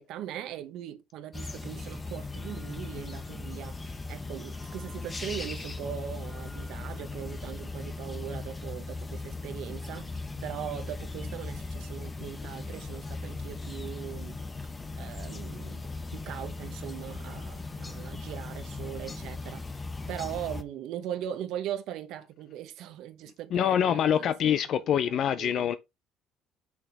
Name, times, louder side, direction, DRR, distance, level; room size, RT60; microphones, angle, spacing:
voice 1, 0.0-14.4 15.0-24.5 24.8-25.7, right 10 dB, 75° right, 1.0 m, -40 dB
sound 1, 1.3-20.6, left 3 dB, 20° left, 0.9 m, -38 dB
voice 2, 23.5-25.8, left 9 dB, 60° left, 0.4 m, -25 dB
6.3 x 5.9 x 3.4 m
cardioid pair, 105°, 0 cm